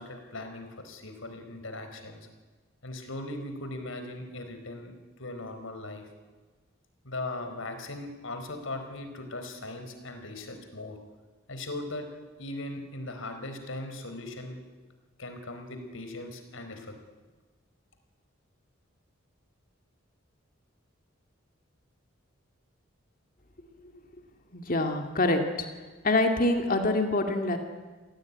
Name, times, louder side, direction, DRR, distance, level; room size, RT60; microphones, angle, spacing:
voice 1, 0.0-2.3 2.8-6.0 7.0-11.0 11.5-12.1 12.4-14.6 15.2-16.9, left 2 dB, 80° left, 6 dB, 4.5 m, -39 dB
voice 2, 24.5-25.7 26.0-27.6, left 2 dB, 45° left, 5 dB, 2.3 m, -25 dB
28.0 x 18.0 x 9.7 m, 1.3 s
head